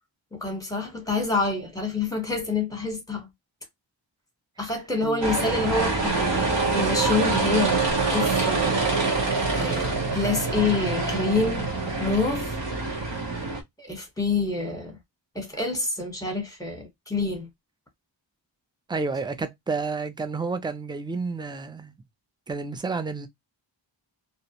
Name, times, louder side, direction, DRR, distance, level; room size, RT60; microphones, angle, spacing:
voice 1, 0.3-3.3 4.6-9.1 9.5-11.7 12.0-12.6 13.8-15.0 15.3-17.5, left 3 dB, 10° left, 1.0 m, -27 dB
voice 2, 5.0-5.9 18.9-21.9 22.5-23.3, right 4 dB, 10° right, 0.3 m, -31 dB
sound 1, 5.2-13.6, right 3 dB, 65° right, 0.9 m, -25 dB
2.5 x 2.0 x 2.8 m
wide cardioid pair, 100°, 46 cm